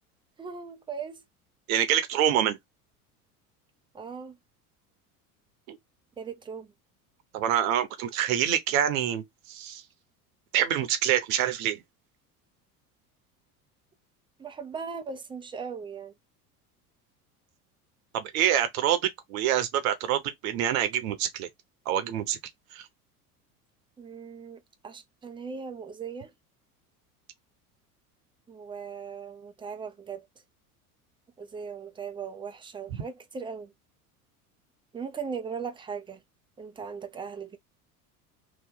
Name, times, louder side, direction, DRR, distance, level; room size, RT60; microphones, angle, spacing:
voice 1, 0.4-1.2 3.9-4.4 6.2-6.7 14.4-16.1 24.0-26.3 28.5-30.2 31.4-33.7 34.9-36.2 36.6-37.6, right 6 dB, 10° right, 0.6 m, -38 dB
voice 2, 1.7-2.6 5.7-5.8 7.3-9.8 10.5-11.8 18.1-21.5 21.9-22.4 22.7-22.9 32.9-33.0, right 10 dB, 65° right, 1.0 m, -26 dB
3.0 x 2.3 x 3.9 m
hypercardioid pair, 75°, 46 cm